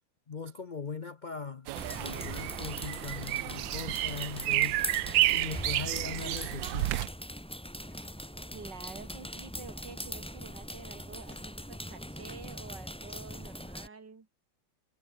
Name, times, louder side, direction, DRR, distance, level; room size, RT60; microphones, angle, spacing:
voice 1, 0.3-1.7 2.0-4.8 5.3-7.1, left 5 dB, 70° left, 0.4 m, -40 dB
sound 1, 1.7-7.1, right 16 dB, 75° right, 1.3 m, -31 dB
sound 2, 1.8-13.9, equal, 5° left, 3.9 m, -41 dB
sound 3, 2.9-3.8 4.1-6.1 6.5-7.2 7.6-8.3 8.6-11.5 12.2-12.9, left 1 dB, 25° left, 6.2 m, -59 dB
voice 2, 8.5-14.3, right 4 dB, 60° right, 3.6 m, -48 dB
omnidirectional pair, 2.2 m